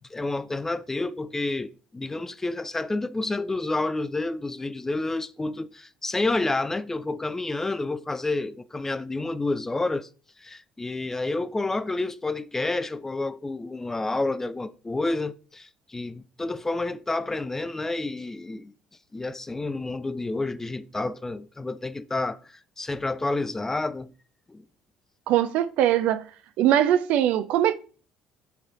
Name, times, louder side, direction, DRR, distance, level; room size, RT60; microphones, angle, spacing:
voice 1, 0.1-10.1 10.4-18.7 19.1-24.1 24.5-24.6, left 2 dB, 15° left, 0.3 m, -29 dB
voice 2, 25.3-26.2 26.6-27.7, right 11 dB, 70° right, 0.3 m, -21 dB
3.9 x 3.2 x 2.4 m
supercardioid pair, 70°, 2 cm